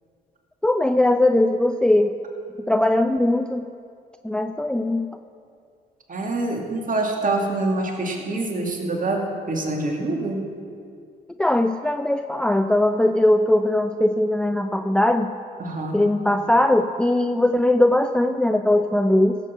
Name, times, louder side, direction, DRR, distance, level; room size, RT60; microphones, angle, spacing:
voice 1, 0.6-2.1 2.7-3.7 4.2-5.1 11.4-15.3 15.9-19.4, left 1 dB, 5° left, 8 dB, 0.5 m, -20 dB
voice 2, 6.1-10.4 15.6-16.0, right 2 dB, 40° right, 2 dB, 2.5 m, -25 dB
16.0 x 7.9 x 5.8 m, 2.3 s
hypercardioid pair, 50°, 21 cm